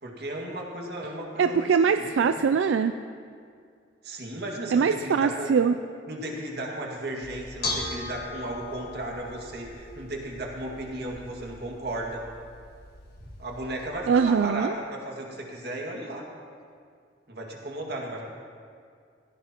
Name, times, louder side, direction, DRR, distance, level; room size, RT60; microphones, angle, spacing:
voice 1, 0.0-1.7 2.0-2.4 4.0-5.5 6.1-12.2 13.4-16.3 17.3-18.2, right 1 dB, 60° right, -1 dB, 2.1 m, -35 dB
voice 2, 1.4-3.0 4.7-5.8 14.1-14.7, right 6 dB, 85° right, 10 dB, 0.3 m, -22 dB
Bell / Dishes pots and pans, 7.2-13.9, left 2 dB, 60° left, 1.7 m, -39 dB
16.5 x 16.0 x 3.0 m, 2.2 s
head